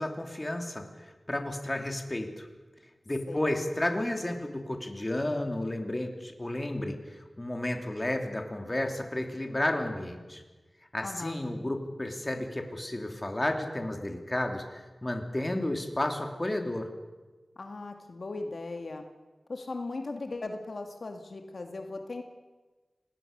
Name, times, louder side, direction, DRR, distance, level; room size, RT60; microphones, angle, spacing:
voice 1, 0.0-2.5 3.1-10.4 10.9-16.9, left 1 dB, 25° left, 4 dB, 3.0 m, -32 dB
voice 2, 11.0-11.4 17.6-19.0 19.5-22.2, left 3 dB, 70° left, 5 dB, 1.8 m, -38 dB
27.0 x 19.5 x 6.7 m, 1.3 s
wide cardioid pair, 90°, 0 cm